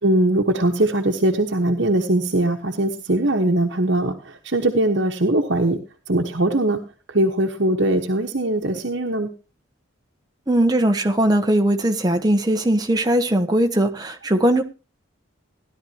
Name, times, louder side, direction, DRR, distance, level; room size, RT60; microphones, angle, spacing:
voice 1, 0.0-5.8 6.1-9.3, right 1 dB, 60° right, 1.4 m, -21 dB
voice 2, 10.5-14.6, right 1 dB, 20° right, 1.2 m, -19 dB
16.5 x 11.5 x 2.9 m
head